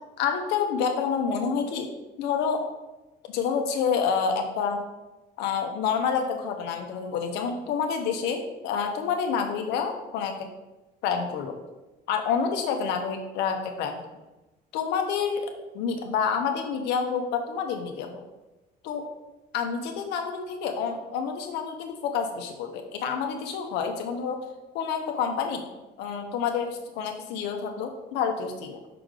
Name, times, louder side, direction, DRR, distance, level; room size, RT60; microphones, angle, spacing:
voice 1, 0.2-1.9 2.2-2.6 3.3-4.8 5.4-10.5 11.0-11.6 12.1-14.0 14.7-15.5 15.7-18.2 18.8-19.0 19.5-24.4 24.7-25.6 26.0-28.8, left 6 dB, 90° left, 4 dB, 0.9 m, -28 dB
5.9 x 4.9 x 3.8 m, 1.0 s
cardioid pair, 110°, 17 cm